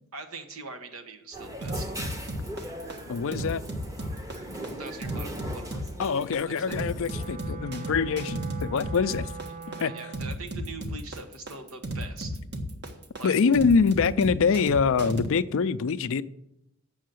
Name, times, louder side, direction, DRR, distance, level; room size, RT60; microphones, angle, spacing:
voice 1, 0.1-1.9 4.8-6.1 6.6-6.8 9.8-12.4 13.2-13.3, right 3 dB, 75° right, 1.2 m, -42 dB
sound 1, 1.3-7.3, right 1 dB, 15° right, 1.0 m, -40 dB
sound 2, 1.6-15.3, right 1 dB, 50° right, 1.3 m, -34 dB
voice 2, 3.1-3.6 6.0-9.3 9.7-9.9 13.2-16.2, left 5 dB, 65° left, 0.4 m, -24 dB
Wind instrument woodwind instrument, 7.0-10.4, right 4 dB, 35° right, 0.4 m, -41 dB
7.5 x 6.5 x 7.7 m
head